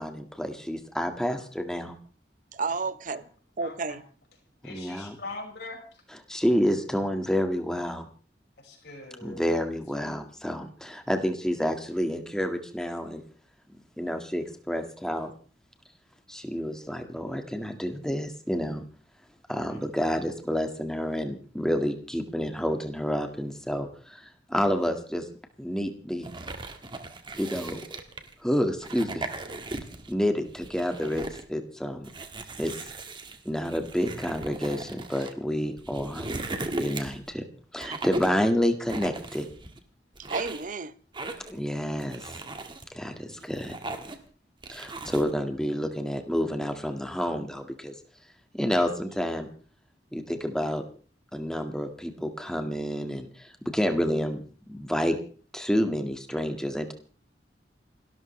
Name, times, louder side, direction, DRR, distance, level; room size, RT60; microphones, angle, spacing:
voice 1, 0.0-2.0 4.6-5.2 6.3-8.1 9.2-13.2 14.0-15.3 16.3-18.8 19.5-25.3 25.6-26.3 27.4-27.8 28.4-29.3 30.1-32.1 32.6-32.7 33.5-36.3 36.8-37.4 37.7-39.5 41.5-42.3 42.9-43.7 44.7-47.9 48.5-49.5 50.1-50.8 51.3-54.4 54.7-55.2 55.5-56.9, equal, 5° left, 1.9 m, -29 dB
voice 2, 2.5-3.2 3.6-4.0 37.9-38.0 40.3-40.9, right 4 dB, 45° right, 0.8 m, -31 dB
voice 3, 3.6-4.0 4.6-5.8 8.6-9.5 19.5-19.8, left 2 dB, 65° left, 5.6 m, -42 dB
sound 1, 26.2-28.3 28.8-30.1 30.5-31.5 32.0-35.3 35.8-37.3 37.8-38.4 38.9-39.8 40.2-40.7 41.1-41.6 42.0-42.9 43.3-44.3 44.6-45.3, right 2 dB, 30° right, 1.8 m, -37 dB
28.5 x 13.0 x 3.3 m
head